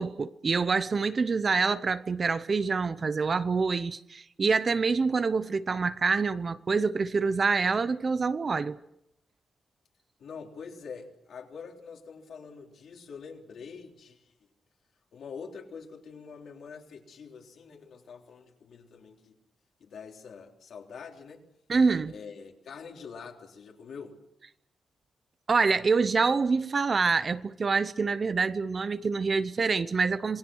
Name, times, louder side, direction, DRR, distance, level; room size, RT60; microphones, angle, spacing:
voice 1, 0.0-8.8 21.7-22.1 25.5-30.4, right 4 dB, 35° right, 0.8 m, -26 dB
voice 2, 10.2-14.3 15.1-19.3 19.8-21.4 22.1-24.1, left 5 dB, 70° left, 3.6 m, -45 dB
27.5 x 20.5 x 6.4 m
wide cardioid pair, 165°, 0 cm